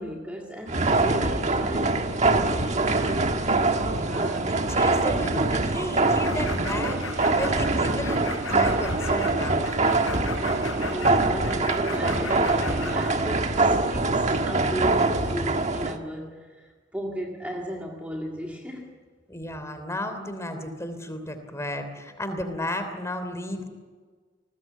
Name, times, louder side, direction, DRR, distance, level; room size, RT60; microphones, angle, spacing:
voice 1, 0.0-3.3 10.9-19.0, equal, 5° right, 1.9 m, -35 dB
sound 1, 0.7-16.0, right 2 dB, 35° right, 1.5 m, -24 dB
voice 2, 3.9-9.8 19.3-23.7, left 1 dB, 15° left, 3.2 m, -33 dB
sound 2, 6.0-13.1, left 4 dB, 85° left, 5.9 m, -37 dB
29.5 x 20.5 x 8.4 m
head